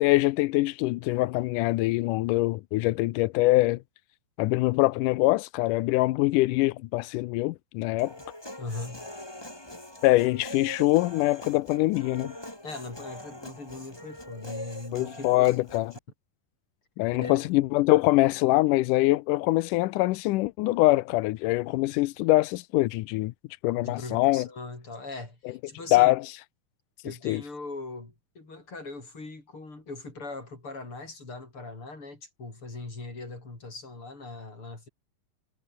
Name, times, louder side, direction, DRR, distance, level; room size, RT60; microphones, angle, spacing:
voice 1, 0.0-3.8 4.4-8.1 10.0-12.4 14.9-15.9 17.0-23.3 23.6-24.5 25.9-26.2 27.3-27.4, left 19 dB, 80° left, 1.9 m, -23 dB
Human voice, 8.0-16.0, left 1 dB, 5° left, 3.3 m, -43 dB
voice 2, 8.6-9.1 12.6-15.5 17.1-17.5 23.8-26.1 27.0-34.9, left 3 dB, 35° left, 7.7 m, -40 dB
omnidirectional pair, 4.3 m